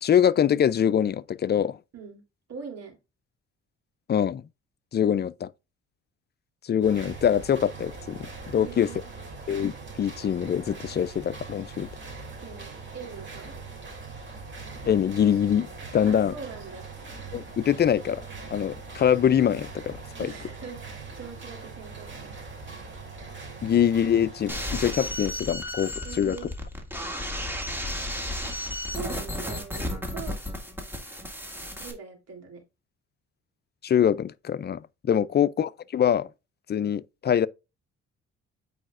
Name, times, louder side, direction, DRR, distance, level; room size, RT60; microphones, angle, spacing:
voice 1, 0.0-1.8 4.1-4.4 4.9-5.5 6.6-8.9 9.5-11.9 14.9-16.3 17.3-18.2 18.5-20.3 23.6-26.4 33.8-36.3 36.7-37.5, left 9 dB, 35° left, 0.4 m, -24 dB
voice 2, 1.9-2.2 2.5-3.0 8.6-9.1 12.4-13.6 16.1-16.9 20.2-22.4 26.0-26.5 28.9-30.4 31.8-32.6 35.1-35.3, right 5 dB, 55° right, 3.2 m, -42 dB
sound 1, 6.8-24.8, right 4 dB, 40° right, 3.0 m, -41 dB
sound 2, 24.5-31.9, left 1 dB, 5° right, 2.0 m, -33 dB
8.5 x 4.9 x 2.5 m
cardioid pair, 90°, 30 cm